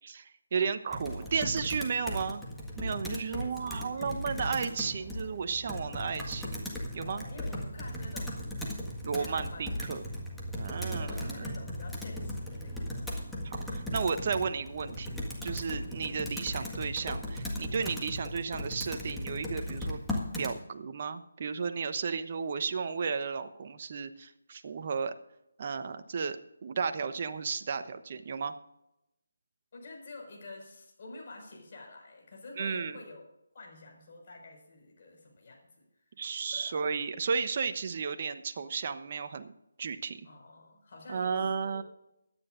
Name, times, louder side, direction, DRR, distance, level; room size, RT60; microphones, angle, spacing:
voice 1, 0.0-2.4 2.8-6.5 6.9-7.2 9.0-10.0 10.6-11.5 13.4-15.1 15.4-20.0 20.4-25.1 25.6-28.5 32.6-33.0 36.2-39.5 39.8-40.2 41.1-41.8, right 5 dB, 45° right, 9 dB, 1.0 m, -33 dB
Computer keyboard, 0.9-20.6, equal, 5° left, 1.7 m, -37 dB
voice 2, 3.3-4.2 7.0-8.5 9.1-9.7 10.8-13.0 29.7-33.3 33.5-36.1 36.5-36.8 40.2-41.8, left 2 dB, 45° left, 0 dB, 5.5 m, -48 dB
23.0 x 10.0 x 2.6 m, 0.86 s
figure-of-eight pair, 160°, 0 cm